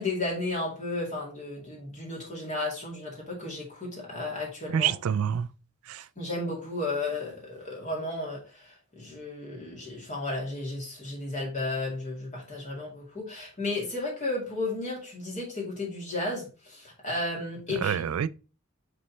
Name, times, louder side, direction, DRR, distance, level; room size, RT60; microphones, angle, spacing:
voice 1, 0.0-4.9 6.2-18.0, left 2 dB, 35° left, 2.1 m, -33 dB
voice 2, 4.7-5.5 5.9-6.1 17.8-18.3, right 8 dB, 85° right, 0.4 m, -27 dB
5.2 x 4.3 x 4.4 m
head